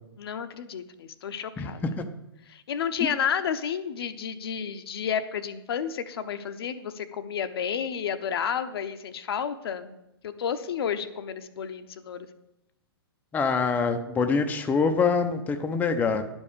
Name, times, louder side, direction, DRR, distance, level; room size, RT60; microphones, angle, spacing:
voice 1, 0.2-2.0 2.5-10.0 10.2-12.3, left 8 dB, 65° left, 10 dB, 0.9 m, -31 dB
voice 2, 1.6-1.9 13.3-16.2, left 5 dB, 10° left, 6 dB, 0.7 m, -25 dB
10.5 x 5.3 x 6.8 m, 0.86 s
hypercardioid pair, 130°, 14 cm